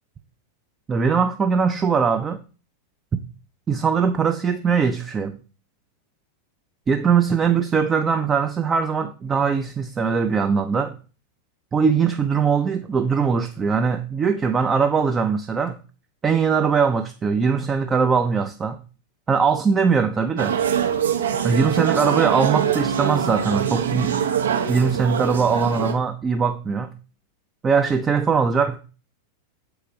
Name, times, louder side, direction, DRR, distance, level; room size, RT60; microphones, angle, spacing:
voice 1, 0.9-2.4 3.7-5.4 6.9-11.0 11.7-15.8 16.2-18.8 19.3-20.6 21.4-24.1 24.7-26.9 27.6-28.8, right 5 dB, 20° right, 0.6 m, -21 dB
sound 1, 20.4-25.9, right 8 dB, 65° right, 1.1 m, -23 dB
7.5 x 4.9 x 3.9 m
figure-of-eight pair, 90°, 0 cm